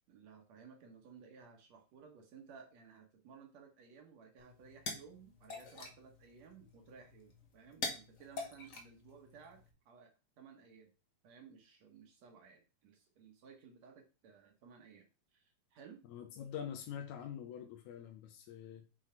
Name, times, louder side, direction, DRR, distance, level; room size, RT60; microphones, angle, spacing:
voice 1, 0.1-10.9 11.2-16.0, right 6 dB, 65° right, 2.4 m, -58 dB
sound 1, 4.4-9.7, left 3 dB, 50° left, 1.0 m, -46 dB
voice 2, 16.1-18.9, left 9 dB, 75° left, 2.0 m, -45 dB
7.4 x 4.1 x 4.4 m
omnidirectional pair, 3.5 m